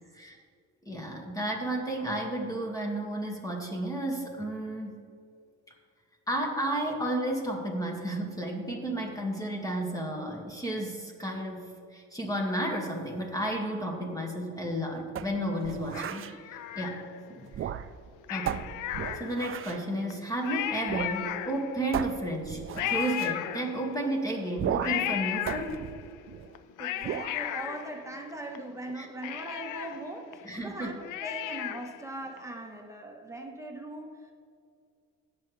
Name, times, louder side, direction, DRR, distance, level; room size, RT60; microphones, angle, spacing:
voice 1, 0.9-5.0 6.3-17.0 17.3-17.7 18.3-18.7 19.1-25.8 29.0-29.1 30.4-30.9, right 1 dB, 10° left, 0 dB, 2.1 m, -32 dB
sound 1, 15.1-16.4 17.5-18.1 18.5-19.9 20.9-21.2 21.4-21.5 21.9-23.4 24.6-25.1 25.5-26.6 27.0-27.4, right 9 dB, 45° right, 0.4 m, -35 dB
Cat, 15.9-17.4 18.2-19.6 20.1-20.2 20.4-21.9 22.8-24.1 24.8-26.1 26.5-28.6 28.9-29.0 29.2-32.0 32.4-32.5, left 12 dB, 85° left, 0.5 m, -35 dB
voice 2, 26.8-34.3, right 1 dB, 10° right, 1 dB, 1.3 m, -40 dB
16.5 x 6.9 x 3.4 m, 2.3 s
cardioid pair, 90°, 30 cm